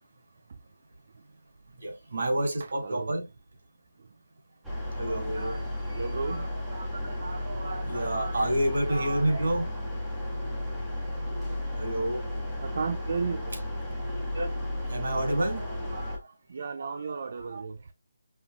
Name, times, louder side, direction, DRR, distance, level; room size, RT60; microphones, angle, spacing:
voice 1, 1.8-3.3 5.0-5.7 6.2-9.7 11.8-12.2 14.3-14.5 14.9-16.2 16.8-17.6, right 1 dB, 65° right, 1.8 m, -30 dB
voice 2, 2.8-3.1 5.9-6.5 7.6-7.7 12.6-13.5 16.5-17.9, right 5 dB, 45° right, 0.3 m, -34 dB
sound 1, 4.6-16.2, left 1 dB, 5° right, 0.7 m, -34 dB
5.5 x 2.4 x 2.4 m
hypercardioid pair, 175°, 0 cm